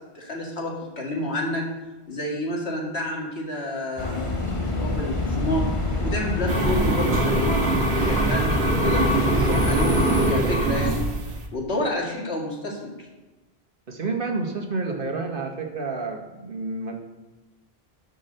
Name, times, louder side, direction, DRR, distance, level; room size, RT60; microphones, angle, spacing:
voice 1, 0.1-1.7 2.1-4.2 4.8-5.6 6.0-11.1 11.5-12.9, left 1 dB, 85° left, -1 dB, 2.3 m, -29 dB
sound 1, 4.0-10.3, left 2 dB, 30° left, 1.4 m, -27 dB
sound 2, 6.5-11.5, right 2 dB, 80° right, 1.5 m, -23 dB
voice 2, 13.9-17.0, right 3 dB, 60° right, 3 dB, 1.4 m, -29 dB
12.0 x 5.4 x 6.6 m, 1.1 s
omnidirectional pair, 1.1 m